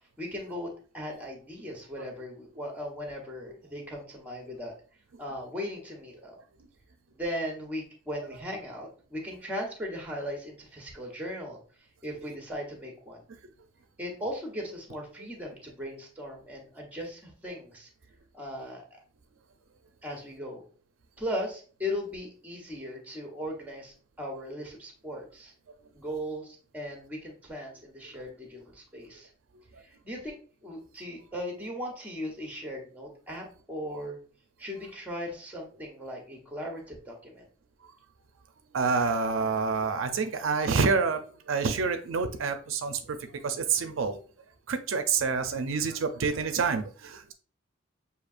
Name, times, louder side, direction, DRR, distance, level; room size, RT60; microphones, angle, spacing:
voice 1, 0.2-4.7 5.2-6.4 7.1-11.6 12.0-13.2 14.0-17.9 18.3-18.8 20.0-20.6 21.2-25.5 25.9-29.3 29.8-30.4 30.6-34.2 34.6-37.4, equal, 10° right, 1 dB, 1.0 m, -38 dB
voice 2, 38.7-41.2 41.5-43.0 43.4-44.2 44.7-47.3, right 5 dB, 80° right, 8 dB, 0.5 m, -27 dB
6.5 x 2.7 x 2.5 m, 0.40 s
head